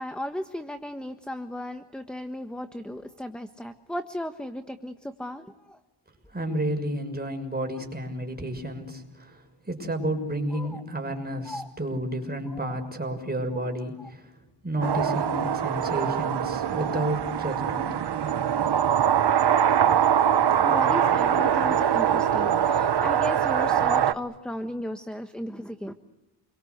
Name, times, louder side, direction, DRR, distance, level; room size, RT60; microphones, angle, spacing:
voice 1, 0.0-5.8 10.5-10.8 11.4-11.7 12.5-12.8 13.5-13.6 14.0-14.1 20.6-25.9, left 1 dB, ahead, 8 dB, 1.3 m, -35 dB
voice 2, 6.3-14.3 14.6-17.9, right 1 dB, 20° right, 4 dB, 6.5 m, -31 dB
sound 1, 14.8-24.1, right 9 dB, 65° right, 1.2 m, -23 dB
29.0 x 23.5 x 8.1 m, 1.0 s
wide cardioid pair, 105°, 43 cm